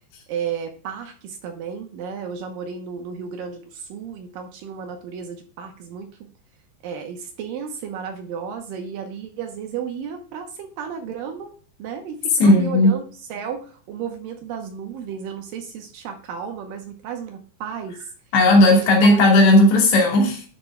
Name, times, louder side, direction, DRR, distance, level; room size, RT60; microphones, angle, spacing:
voice 1, 0.3-6.3 6.8-11.5 11.8-18.1 18.7-19.5, right 7 dB, 80° right, 2.0 m, -33 dB
voice 2, 12.4-12.9 18.3-20.4, left 1 dB, 70° left, 4.2 m, -14 dB
11.0 x 6.7 x 2.3 m
omnidirectional pair, 5.1 m